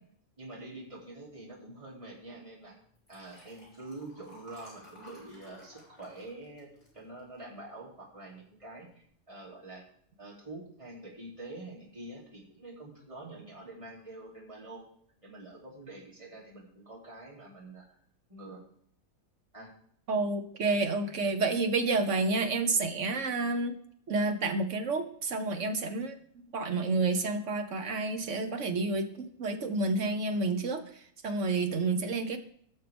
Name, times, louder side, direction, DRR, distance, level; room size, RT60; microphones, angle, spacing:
voice 1, 0.4-2.8 3.1-6.7 6.9-8.9 9.3-9.9 10.2-14.8 15.2-18.0 18.3-18.6 19.5-19.7, right 2 dB, 20° right, -5 dB, 3.1 m, -46 dB
Liquid, 3.0-7.6 8.1-8.4 8.6-8.7, left 1 dB, 40° left, 4.8 m, -55 dB
voice 2, 20.1-23.7 24.1-26.2 26.5-32.4, right 3 dB, 60° right, 6 dB, 1.4 m, -30 dB
17.0 x 6.5 x 3.5 m, 0.65 s
omnidirectional pair, 1.5 m